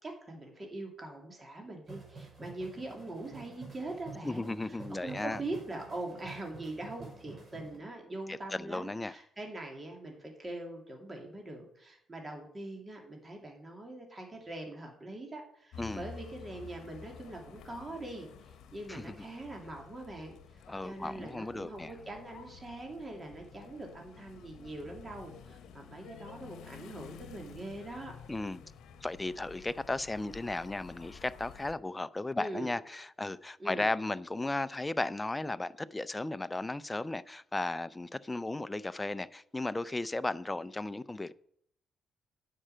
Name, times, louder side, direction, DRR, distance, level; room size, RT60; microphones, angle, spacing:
voice 1, 0.0-28.1 32.4-32.7 33.6-33.9, right 2 dB, 25° right, 2.5 m, -43 dB
sound 1, 1.9-7.8, right 3 dB, 40° right, 4.4 m, -49 dB
voice 2, 4.2-5.4 8.3-9.1 15.8-16.0 18.9-19.1 20.7-21.9 28.3-28.6 29.0-41.3, left 2 dB, 15° left, 0.5 m, -35 dB
sound 2, 15.7-31.7, left 6 dB, 80° left, 0.9 m, -51 dB
9.9 x 5.5 x 7.7 m
cardioid pair, 90°, 0 cm